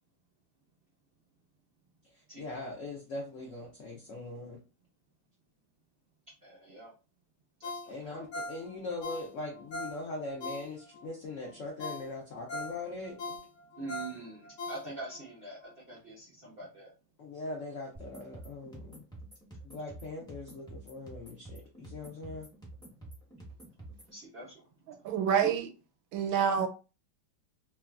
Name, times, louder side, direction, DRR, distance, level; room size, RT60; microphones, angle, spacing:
voice 1, 2.1-4.6 7.9-13.4 17.2-19.0 19.6-22.5, left 2 dB, 85° left, 0.6 m, -41 dB
voice 2, 6.4-6.9 7.6-8.2 13.8-15.6 15.9-16.9 24.1-24.5 25.4-25.5, right 3 dB, 65° right, 0.5 m, -44 dB
Ringtone, 7.6-11.1 11.5-11.6 11.8-15.2 15.6-15.7, left 2 dB, 65° left, 1.3 m, -41 dB
sound 1, 17.9-24.1, right 2 dB, 5° left, 0.3 m, -49 dB
voice 3, 25.0-25.7 26.1-26.7, right 8 dB, 80° right, 1.3 m, -27 dB
3.2 x 2.2 x 2.3 m
omnidirectional pair, 2.1 m